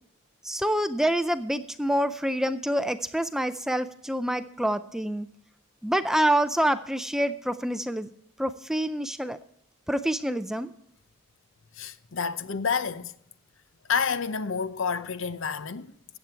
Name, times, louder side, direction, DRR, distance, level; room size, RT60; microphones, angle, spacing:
voice 1, 0.4-5.3 5.8-8.1 8.4-9.4 9.9-10.7, right 1 dB, ahead, 0.3 m, -27 dB
voice 2, 11.8-13.1 13.9-16.2, left 6 dB, 65° left, 0.7 m, -29 dB
14.5 x 8.8 x 4.5 m
head